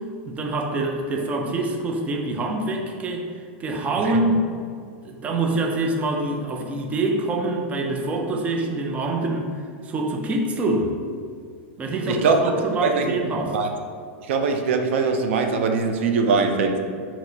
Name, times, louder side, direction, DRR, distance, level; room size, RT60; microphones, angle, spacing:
voice 1, 0.3-3.3 3.6-4.5 5.0-9.5 9.8-11.0 11.8-13.6, right 2 dB, 20° right, 1 dB, 0.5 m, -25 dB
voice 2, 12.1-12.4 12.8-13.1 13.5-13.7 14.3-16.8, right 4 dB, 80° right, 4 dB, 0.5 m, -21 dB
6.0 x 2.9 x 2.8 m, 2.2 s
supercardioid pair, 140°, 7 cm